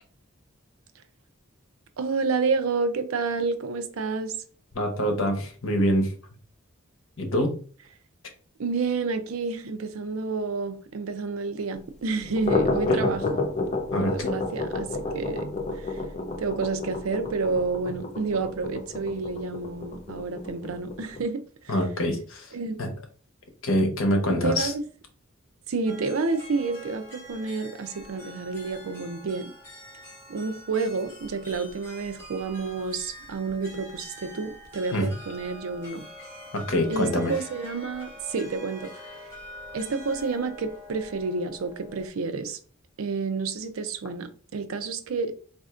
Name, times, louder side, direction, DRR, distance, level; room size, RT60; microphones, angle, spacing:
voice 1, 2.0-4.3 8.6-13.5 14.0-15.5 15.8-16.0 16.4-21.8 22.5-22.8 24.3-24.8 25.7-29.5 30.3-36.0 36.9-39.3 39.7-42.6 43.0-45.3, right 4 dB, 85° right, 0.5 m, -29 dB
voice 2, 4.7-6.1 7.2-7.6 12.9-13.0 13.9-14.3 21.7-22.5 22.8-22.9 23.6-24.7 34.9-35.1 36.5-37.3, equal, 70° left, 0.9 m, -25 dB
sound 1, 12.2-21.2, left 2 dB, 30° left, 0.4 m, -30 dB
sound 2, 25.9-42.1, left 1 dB, 10° left, 1.5 m, -45 dB
4.2 x 2.5 x 2.4 m
head